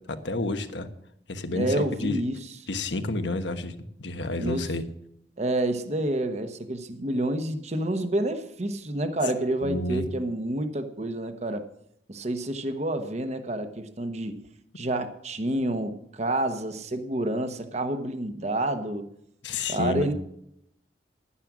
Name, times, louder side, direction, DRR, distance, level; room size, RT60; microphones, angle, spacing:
voice 1, 0.1-0.9 1.3-2.2 2.7-3.7 4.0-4.8 9.6-10.0 19.4-20.1, left 2 dB, 85° left, 8 dB, 1.2 m, -30 dB
voice 2, 1.5-2.4 4.4-4.7 5.4-11.7 12.1-14.4 14.8-19.1 19.7-20.1, right 1 dB, 40° right, 8 dB, 1.0 m, -28 dB
12.0 x 9.8 x 6.1 m, 0.76 s
head